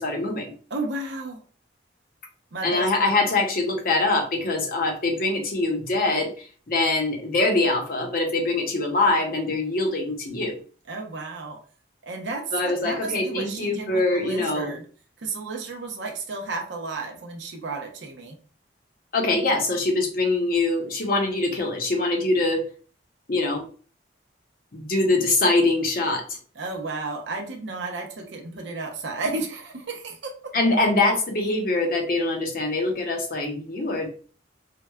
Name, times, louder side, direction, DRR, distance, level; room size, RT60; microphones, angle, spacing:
voice 1, 0.0-0.5 2.6-10.6 12.5-14.7 19.1-22.7 23.3-23.7 24.7-26.4 30.5-34.1, left 2 dB, 50° left, 2 dB, 0.7 m, -23 dB
voice 2, 0.7-1.4 2.5-2.9 10.9-11.6 12.0-14.8 15.2-18.4 26.6-30.5, right 3 dB, 75° right, 2 dB, 0.7 m, -32 dB
4.6 x 2.2 x 2.2 m, 0.40 s
head